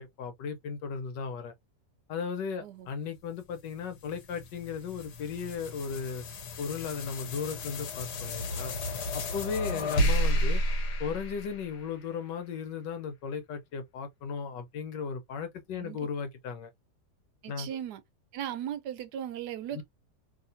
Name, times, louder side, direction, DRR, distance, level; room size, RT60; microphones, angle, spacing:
voice 1, 0.0-1.5 2.1-6.2 6.6-8.7 9.1-10.6 11.0-16.7 17.5-17.8 19.7-19.8, left 6 dB, 90° left, 1.5 m, -36 dB
voice 2, 2.6-2.9 9.7-10.0 15.8-16.0 17.4-18.0 18.3-19.8, right 10 dB, 75° right, 1.1 m, -38 dB
sound 1, 3.5-12.1, equal, 70° left, 1.3 m, -32 dB
2.9 x 2.8 x 2.6 m
omnidirectional pair, 1.9 m